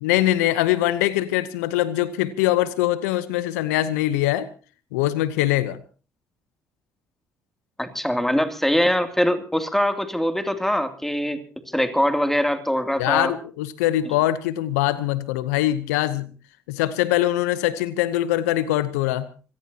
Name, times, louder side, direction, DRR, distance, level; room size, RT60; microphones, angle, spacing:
voice 1, 0.0-4.5 4.9-5.8 13.0-16.3 16.7-19.3, left 14 dB, 80° left, 15 dB, 0.9 m, -22 dB
voice 2, 7.8-13.3, equal, 5° left, 6 dB, 2.8 m, -23 dB
25.5 x 17.5 x 2.9 m, 0.36 s
hypercardioid pair, 50°, 9 cm